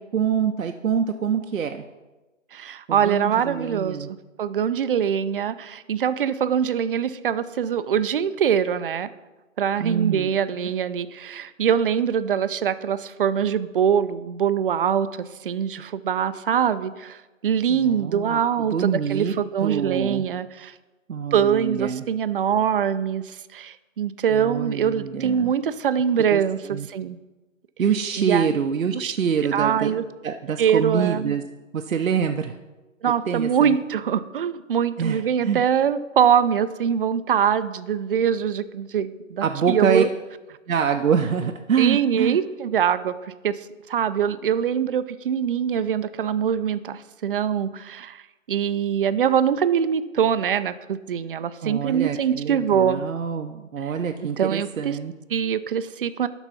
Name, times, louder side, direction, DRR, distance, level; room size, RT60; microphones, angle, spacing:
voice 1, 0.1-1.8 2.9-4.1 9.8-10.3 17.7-19.3 19.6-20.3 21.1-22.0 24.3-25.5 26.3-26.4 26.7-26.9 27.8-29.9 30.2-31.4 31.7-32.6 33.3-33.7 35.0-35.6 39.4-40.0 40.7-42.4 51.6-55.1, right 7 dB, 85° right, 5 dB, 0.7 m, -25 dB
voice 2, 2.5-9.1 9.6-17.2 17.4-20.7 21.3-27.2 28.2-28.5 28.9-29.1 29.5-30.0 30.6-31.3 33.0-40.1 41.8-43.6 43.9-48.2 48.5-53.0 53.8-53.9 54.4-55.0 55.3-56.3, right 8 dB, 45° right, 13 dB, 0.4 m, -23 dB
11.5 x 4.0 x 5.8 m, 1.1 s
figure-of-eight pair, 140°, 40 cm